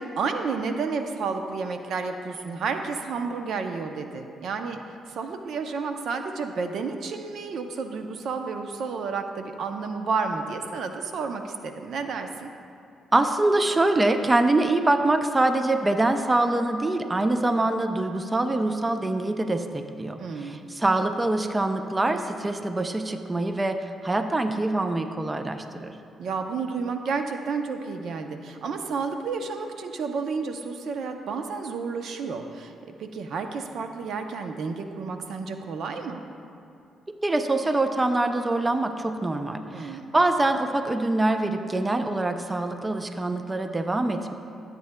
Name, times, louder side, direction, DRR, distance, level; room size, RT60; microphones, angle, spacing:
voice 1, 0.0-4.8 5.1-12.5 20.2-20.6 26.2-32.7 33.0-36.2 39.7-40.1, right 4 dB, 70° right, 6 dB, 0.6 m, -31 dB
voice 2, 13.1-25.9 37.2-44.3, right 2 dB, 20° right, 7 dB, 0.5 m, -24 dB
14.0 x 8.3 x 2.2 m, 2.5 s
cardioid pair, 80°, 0 cm